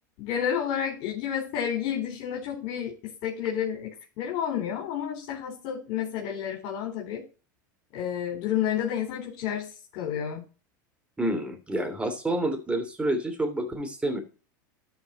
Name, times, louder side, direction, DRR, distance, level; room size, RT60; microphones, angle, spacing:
voice 1, 0.2-3.9 4.2-7.2 7.9-10.4, left 9 dB, 60° left, -1 dB, 4.1 m, -30 dB
voice 2, 11.2-14.2, right 1 dB, 10° right, 7 dB, 3.0 m, -28 dB
13.0 x 5.5 x 4.2 m, 0.34 s
hypercardioid pair, 100°, 11 cm